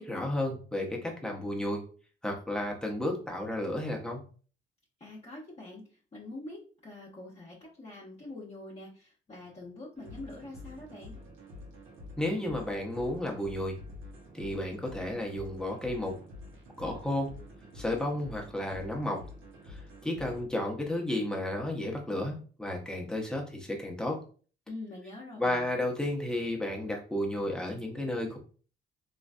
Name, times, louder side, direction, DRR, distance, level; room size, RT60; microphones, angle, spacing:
voice 1, 0.0-1.8 2.2-4.2 12.2-13.8 14.3-16.2 16.8-17.3 17.7-19.2 19.7-24.2 25.4-28.4, left 1 dB, 5° left, 0 dB, 0.8 m, -32 dB
voice 2, 5.0-5.8 6.1-11.2 24.7-25.7, left 2 dB, 30° left, -7 dB, 0.9 m, -45 dB
sound 1, 10.0-20.5, left 2 dB, 80° right, 0.9 m, -48 dB
3.1 x 2.5 x 2.3 m, 0.40 s
cardioid pair, 90°, 20 cm